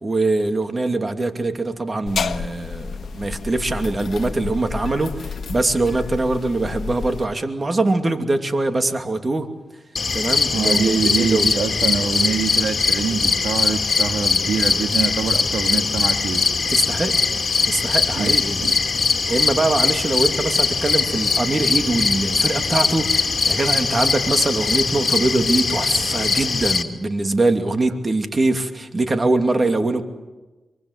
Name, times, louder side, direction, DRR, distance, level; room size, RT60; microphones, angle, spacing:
voice 1, 0.0-9.5 10.1-11.5 16.7-18.7 19.3-30.0, right 2 dB, 35° right, 7 dB, 2.7 m, -23 dB
sound 1, 2.1-7.3, left 5 dB, 70° left, 1.3 m, -30 dB
sound 2, 10.0-26.8, left 4 dB, 50° left, 2.8 m, -21 dB
voice 2, 10.5-16.4 18.2-18.7, right 6 dB, 80° right, 6 dB, 1.9 m, -25 dB
25.0 x 24.5 x 8.2 m, 1.2 s
cardioid pair, 60°, 0 cm